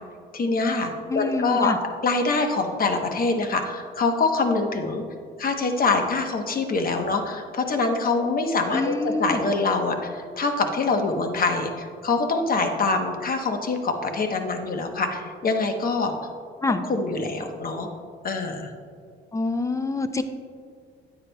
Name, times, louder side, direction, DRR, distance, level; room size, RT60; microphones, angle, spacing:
voice 1, 0.3-1.7 2.0-5.0 5.4-16.1 16.9-17.9 18.2-18.7, left 3 dB, 45° left, 5 dB, 1.0 m, -24 dB
voice 2, 1.1-1.8 8.7-9.4 16.6-16.8 19.3-20.2, left 3 dB, 15° left, 9 dB, 0.5 m, -26 dB
9.5 x 8.9 x 2.3 m, 2.2 s
cardioid pair, 90°, 20 cm